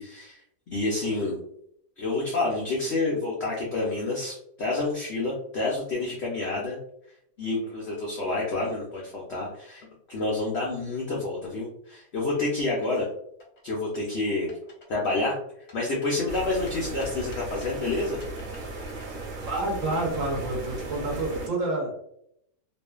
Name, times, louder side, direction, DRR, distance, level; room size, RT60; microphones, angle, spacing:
voice 1, 0.0-1.4 2.0-6.8 7.4-13.1 13.6-14.5 14.9-15.4 15.7-18.2, left 2 dB, 80° left, -4 dB, 0.5 m, -29 dB
sound 1, 12.4-13.0 13.4-14.2 14.5-14.9 15.1-16.7 17.0-17.8 18.2-20.0 20.2-21.2, left 1 dB, 35° left, 0.6 m, -50 dB
sound 2, 16.3-21.5, right 2 dB, 80° right, 1.2 m, -36 dB
voice 2, 19.5-22.1, right 2 dB, 60° right, -2 dB, 0.9 m, -29 dB
2.6 x 2.4 x 2.2 m, 0.74 s
omnidirectional pair, 1.8 m